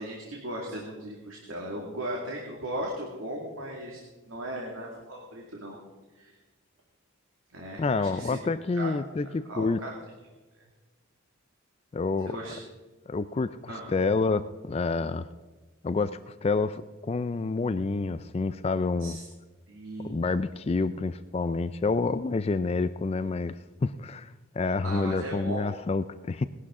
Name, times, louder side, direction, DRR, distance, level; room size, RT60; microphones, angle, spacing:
voice 1, 0.0-4.0 4.3-5.8 6.2-6.4 7.5-8.4 8.7-8.9 9.5-9.9 12.2-12.6 13.7-13.9 19.0-19.2 19.7-20.1 24.8-25.8, right 1 dB, 65° right, -1 dB, 2.2 m, -37 dB
voice 2, 7.8-9.8 11.9-12.4 13.1-15.3 15.8-19.2 20.1-26.5, left 3 dB, 30° left, 13 dB, 0.3 m, -28 dB
20.0 x 11.5 x 3.7 m, 1.2 s
head